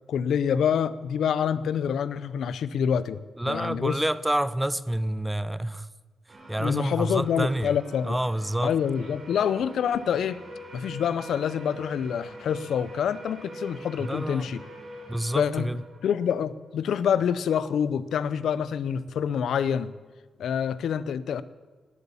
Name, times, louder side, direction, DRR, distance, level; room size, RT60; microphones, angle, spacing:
voice 1, 0.1-4.0 6.6-8.2 8.6-10.4 10.7-14.6 15.3-15.7 16.0-19.9 20.4-21.4, left 8 dB, 85° left, 0.6 m, -26 dB
voice 2, 3.4-5.9 6.5-7.7 8.0-8.8 14.0-14.5 15.1-15.8, right 1 dB, 5° right, 0.4 m, -28 dB
sound 1, 6.3-16.9, right 1 dB, 40° right, 4.1 m, -44 dB
19.5 x 8.2 x 7.2 m
wide cardioid pair, 155°, 0 cm